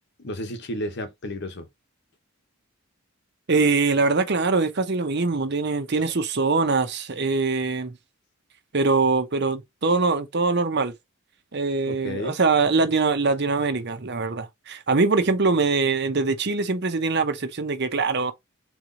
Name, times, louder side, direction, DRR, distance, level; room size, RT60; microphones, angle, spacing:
voice 1, 0.2-1.7 11.9-12.4, left 1 dB, 55° left, 1.0 m, -32 dB
voice 2, 3.5-7.9 8.7-10.9 11.5-18.3, right 4 dB, 55° right, 0.8 m, -23 dB
4.0 x 3.1 x 3.8 m
head